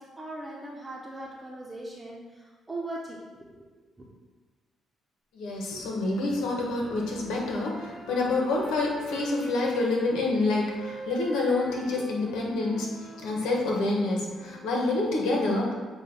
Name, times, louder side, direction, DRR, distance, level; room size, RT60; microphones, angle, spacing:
voice 1, 0.0-3.7 4.0-4.1, right 2 dB, 15° right, -3 dB, 1.0 m, -39 dB
voice 2, 5.3-15.7, left 2 dB, 90° left, -1 dB, 1.3 m, -27 dB
sound 1, 5.8-9.9 10.5-14.7, equal, 25° left, 1.6 m, -45 dB
7.5 x 2.6 x 5.5 m, 1.4 s
cardioid pair, 90°, 0 cm